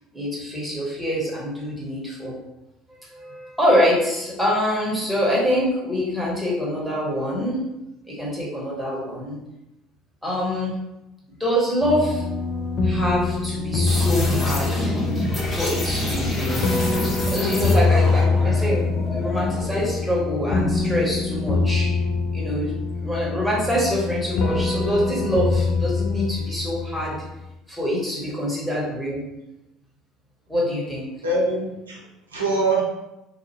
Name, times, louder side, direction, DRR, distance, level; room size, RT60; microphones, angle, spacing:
voice 1, 0.1-2.3 2.9-7.6 8.0-9.4 10.2-10.7 11.4-12.2 12.8-14.9 15.5-16.6 17.2-21.9 22.3-27.2 27.7-29.2 30.5-31.1, equal, ahead, -5 dB, 1.2 m, -25 dB
sound 1, 11.8-27.3, left 3 dB, 50° left, 0.4 m, -24 dB
sound 2, 13.9-20.0, equal, 30° left, 0.8 m, -28 dB
voice 2, 31.2-32.8, right 2 dB, 85° right, -3 dB, 0.5 m, -24 dB
2.7 x 2.3 x 3.0 m, 0.92 s
figure-of-eight pair, 60°, 0 cm